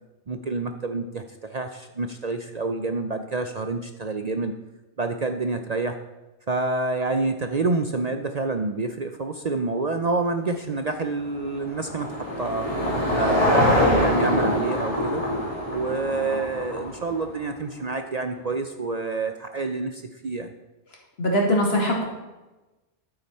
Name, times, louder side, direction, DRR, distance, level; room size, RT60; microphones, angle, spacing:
voice 1, 0.3-4.5 5.0-6.0 6.5-12.7 13.1-15.2 15.7-20.5, right 3 dB, 40° right, 6 dB, 0.7 m, -28 dB
Car passing by / Engine, 10.9-17.4, left 1 dB, 30° left, 3.1 m, -24 dB
voice 2, 21.2-22.0, equal, 60° left, -1 dB, 2.7 m, -21 dB
11.5 x 8.7 x 5.6 m, 1.1 s
omnidirectional pair, 1.2 m